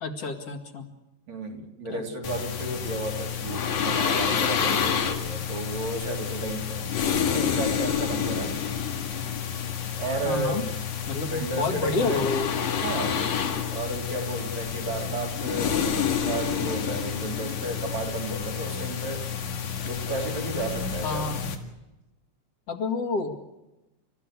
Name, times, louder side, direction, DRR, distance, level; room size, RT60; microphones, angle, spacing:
voice 1, 0.0-0.9 1.9-2.1 10.2-10.6 11.1-12.5 13.0-13.1 21.0-21.5 22.7-23.4, left 3 dB, 55° left, 4 dB, 3.1 m, -29 dB
voice 2, 1.3-8.5 10.0-10.7 11.2-12.3 12.8-13.2 13.7-15.8 16.2-19.3 19.8-21.3, right 2 dB, 70° right, 1 dB, 4.5 m, -33 dB
sound 1, 2.2-21.6, left 7 dB, 75° left, 3.3 m, -29 dB
30.0 x 15.0 x 8.3 m, 1.0 s
omnidirectional pair, 3.3 m